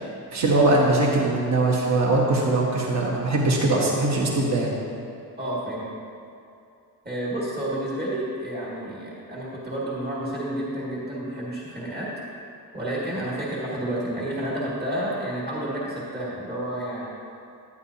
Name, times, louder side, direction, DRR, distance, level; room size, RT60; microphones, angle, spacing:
voice 1, 0.3-4.7, right 2 dB, 45° right, -3 dB, 1.2 m, -21 dB
voice 2, 5.4-6.0 7.0-12.1 12.7-17.1, right 1 dB, 25° right, -6 dB, 1.8 m, -30 dB
11.0 x 9.6 x 2.8 m, 2.6 s
wide cardioid pair, 175°, 37 cm